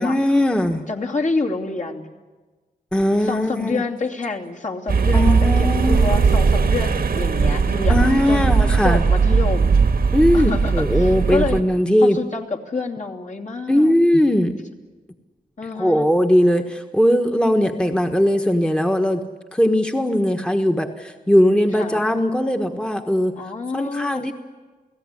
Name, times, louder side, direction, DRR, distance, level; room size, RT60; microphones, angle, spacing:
voice 1, 0.0-0.9 2.9-3.8 5.1-6.1 7.9-9.0 10.1-12.2 13.7-14.5 15.8-19.2 19.5-23.3 23.7-24.3, left 1 dB, 5° left, 4 dB, 1.4 m, -19 dB
voice 2, 0.9-2.1 3.2-8.5 8.8-9.8 10.3-11.6 12.0-13.9 15.6-16.1 21.7-22.0 23.4-24.2, left 3 dB, 50° left, 0 dB, 2.8 m, -28 dB
sound 1, 4.9-11.6, right 5 dB, 75° right, 1.6 m, -18 dB
30.0 x 17.5 x 9.8 m, 1.3 s
wide cardioid pair, 125°, 16 cm